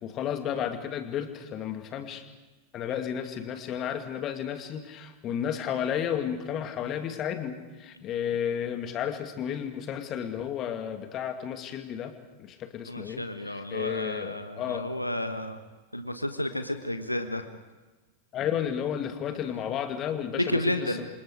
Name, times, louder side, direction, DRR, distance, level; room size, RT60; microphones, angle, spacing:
voice 1, 0.0-2.2 2.7-12.1 12.4-13.2 13.5-14.9 18.3-21.1, left 9 dB, 30° left, 7 dB, 2.4 m, -32 dB
voice 2, 12.9-15.6 15.9-17.5 20.3-21.1, left 1 dB, 85° left, 8 dB, 1.3 m, -31 dB
28.5 x 26.0 x 5.0 m, 1.2 s
figure-of-eight pair, 90°, 0 cm